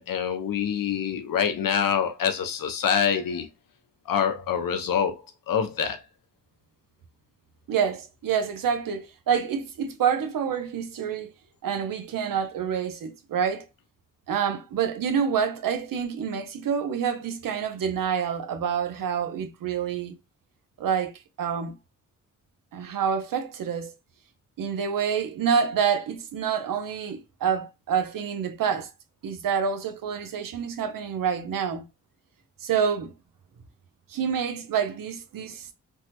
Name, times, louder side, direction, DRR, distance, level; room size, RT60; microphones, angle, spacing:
voice 1, 0.0-3.5 4.1-6.0, left 7 dB, 85° left, 0.7 m, -26 dB
voice 2, 7.7-11.3 11.6-13.7 14.3-20.2 20.8-21.1 21.4-21.8 22.7-23.9 24.6-28.9 29.2-31.8 32.6-33.1 34.1-35.7, right 7 dB, 90° right, 0.6 m, -27 dB
3.4 x 2.1 x 2.9 m
cardioid pair, 80°, 33 cm